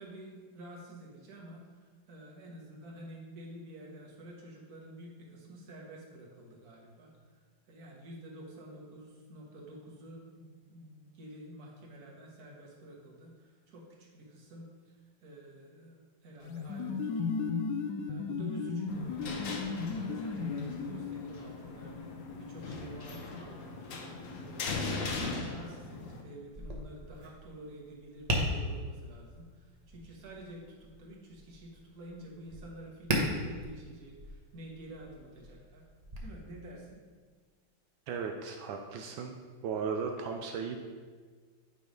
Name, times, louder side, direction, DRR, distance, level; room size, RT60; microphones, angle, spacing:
voice 1, 0.0-17.5 18.1-24.7 25.4-35.9 36.2-37.0, right 1 dB, 55° right, -2 dB, 1.6 m, -49 dB
sound 1, 16.4-21.3, left 5 dB, 75° left, 1.1 m, -35 dB
sound 2, 18.9-26.2, left 3 dB, 60° left, 0.9 m, -39 dB
Tap, 26.5-36.2, equal, 30° right, 0.7 m, -38 dB
voice 2, 38.1-39.4 39.6-40.9, right 5 dB, 85° right, 3 dB, 1.4 m, -36 dB
9.4 x 3.3 x 5.2 m, 1.5 s
omnidirectional pair, 2.1 m